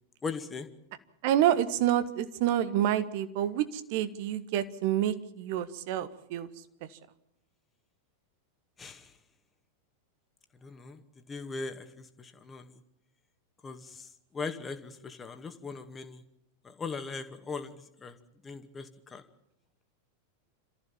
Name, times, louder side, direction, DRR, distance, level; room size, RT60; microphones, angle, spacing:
voice 1, 0.2-0.7 8.8-9.1 10.6-11.0 11.3-12.7 13.6-14.1 14.3-16.2 16.6-18.2 18.4-19.2, left 4 dB, 15° left, 7 dB, 2.2 m, -39 dB
voice 2, 1.2-3.6 3.9-6.5, right 11 dB, 50° right, 12 dB, 1.6 m, -28 dB
27.5 x 14.5 x 7.4 m, 0.82 s
figure-of-eight pair, 90°, 0 cm